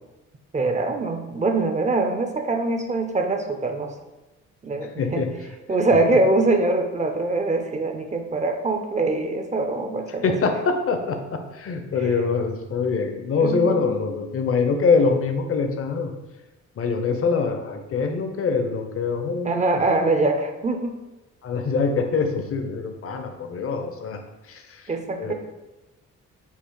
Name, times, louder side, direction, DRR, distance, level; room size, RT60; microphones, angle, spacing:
voice 1, 0.5-3.9 4.6-5.3 5.7-10.3 12.0-12.2 13.4-13.8 19.4-21.0 24.9-25.3, right 2 dB, 25° right, 5 dB, 0.5 m, -23 dB
voice 2, 5.0-5.3 10.2-16.1 16.8-19.8 21.4-24.2 24.5-24.9 25.2-25.3, left 4 dB, 50° left, 5 dB, 0.7 m, -24 dB
5.5 x 2.0 x 4.6 m, 1.0 s
cardioid pair, 90°, 30 cm